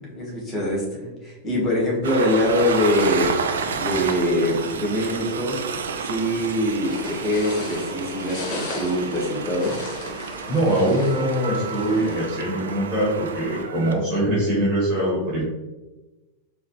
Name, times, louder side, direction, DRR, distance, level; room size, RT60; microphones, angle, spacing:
voice 1, 0.0-5.5 6.0-9.8 13.7-14.0, left 1 dB, 15° left, -3 dB, 1.3 m, -24 dB
Train, 2.0-13.9, right 5 dB, 65° right, 0.3 m, -31 dB
sound 1, 6.8-12.3, left 2 dB, 40° left, 0.8 m, -36 dB
voice 2, 10.5-15.4, right 1 dB, 30° right, -7 dB, 1.4 m, -22 dB
4.7 x 2.2 x 2.8 m, 1.1 s
figure-of-eight pair, 90°, 0 cm